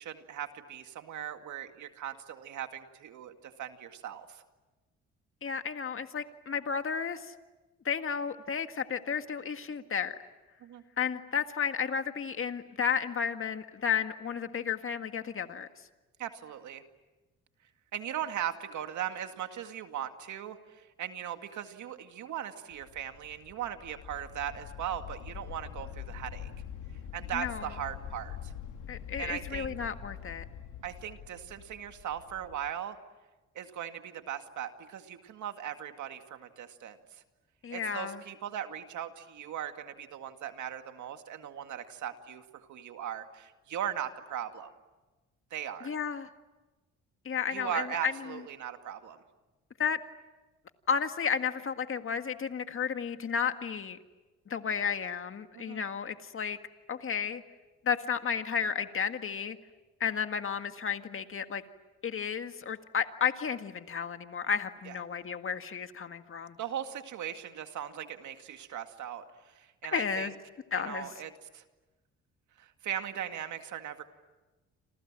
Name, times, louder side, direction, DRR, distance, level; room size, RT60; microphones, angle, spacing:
voice 1, 0.0-4.4 10.6-10.8 16.2-16.8 17.9-26.5 27.1-28.5 29.2-29.7 30.8-33.0 33.6-37.2 37.7-44.7 45.5-45.9 47.5-49.2 55.5-55.8 64.9-65.0 66.6-70.3 70.8-71.6 72.6-74.0, right 10 dB, 75° right, 7 dB, 2.1 m, -39 dB
voice 2, 5.4-7.3 7.9-10.2 11.0-15.7 27.3-27.7 28.9-30.4 37.6-38.2 45.8-46.3 47.3-48.4 49.8-50.0 50.9-54.0 54.5-56.6 56.9-57.4 57.8-59.6 60.0-61.6 62.0-66.6 69.9-70.3 70.7-71.1, left 7 dB, 45° left, 8 dB, 1.9 m, -32 dB
sound 1, 22.7-32.7, left 9 dB, 85° left, 2.3 m, -44 dB
29.0 x 27.0 x 7.5 m, 1.2 s
cardioid pair, 90°, 30 cm